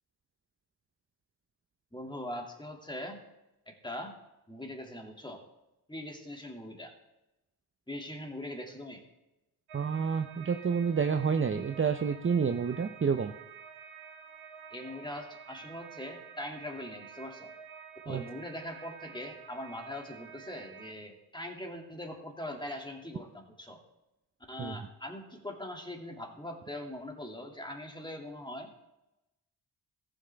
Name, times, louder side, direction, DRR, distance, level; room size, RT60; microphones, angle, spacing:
voice 1, 1.9-3.2 3.7-4.1 4.5-5.4 5.9-6.9 7.9-9.0 14.7-17.5 18.1-23.8 24.5-28.7, left 1 dB, 10° left, 2 dB, 2.3 m, -41 dB
voice 2, 9.7-13.3 18.1-18.2 24.6-24.9, right 6 dB, 25° right, 8 dB, 0.6 m, -29 dB
sound 1, 9.7-20.9, right 7 dB, 75° right, 1.0 m, -50 dB
14.5 x 7.6 x 3.5 m, 0.96 s
supercardioid pair, 45°, 49 cm